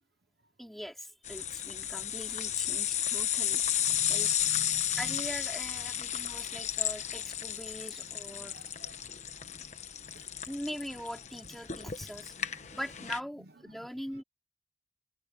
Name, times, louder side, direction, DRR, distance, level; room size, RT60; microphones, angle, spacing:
voice 1, 0.6-3.6 4.1-4.3 5.0-8.6 10.5-12.3 12.7-14.2, equal, ahead, 4.5 m, -42 dB
sound 1, 1.2-13.2, left 10 dB, 40° left, 1.2 m, -33 dB
voice 2, 3.7-5.2 8.5-8.9 13.7-13.8, right 1 dB, 55° right, 0.9 m, -49 dB
head